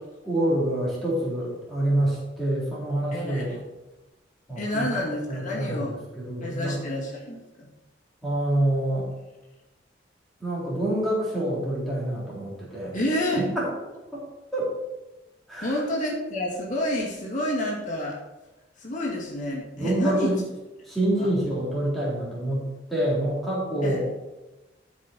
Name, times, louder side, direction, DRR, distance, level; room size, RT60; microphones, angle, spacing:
voice 1, 0.3-3.5 4.5-4.9 5.3-5.9 6.1-6.8 8.2-9.1 10.4-13.0 13.3-13.7 14.1-14.2 14.5-14.7 15.5-15.7 19.8-20.4 20.8-24.0, right 1 dB, ahead, -7 dB, 3.3 m, -26 dB
voice 2, 3.1-3.6 4.6-6.0 6.4-7.7 12.9-13.5 15.6-18.2 18.8-20.3 21.2-21.3 23.8-24.0, left 1 dB, 45° left, -3 dB, 2.1 m, -29 dB
12.0 x 5.4 x 4.2 m, 1.1 s
head